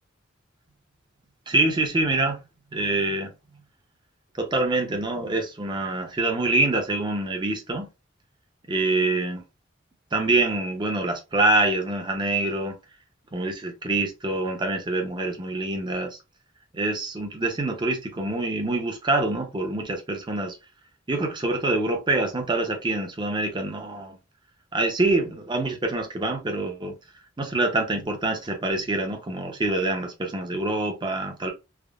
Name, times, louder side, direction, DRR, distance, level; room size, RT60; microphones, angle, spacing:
voice 1, 1.5-2.4 2.7-3.3 4.4-7.9 8.7-9.4 10.1-12.8 13.3-16.2 16.7-20.6 21.1-24.2 24.7-26.9 27.4-31.5, right 2 dB, 25° right, 0.6 m, -25 dB
3.4 x 2.0 x 2.3 m
head